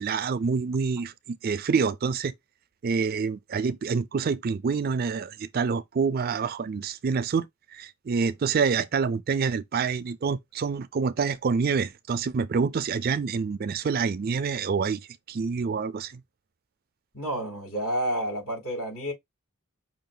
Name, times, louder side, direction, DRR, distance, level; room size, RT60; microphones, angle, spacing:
voice 1, 0.0-2.3 2.8-15.0 15.3-16.2, right 5 dB, 40° right, 0.4 m, -27 dB
voice 2, 17.1-19.1, equal, 70° left, 3.5 m, -30 dB
5.6 x 2.4 x 3.8 m
head